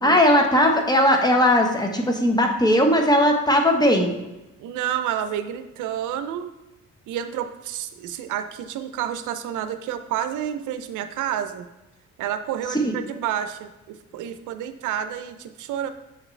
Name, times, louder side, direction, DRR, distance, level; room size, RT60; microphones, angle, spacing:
voice 1, 0.0-4.1 12.7-13.0, left 1 dB, 15° left, 2 dB, 1.1 m, -18 dB
voice 2, 4.6-6.5 7.1-11.6 12.2-13.7 14.1-15.9, right 10 dB, 85° right, 9 dB, 0.6 m, -29 dB
7.6 x 4.9 x 3.3 m, 0.98 s
cardioid pair, 90°, 30 cm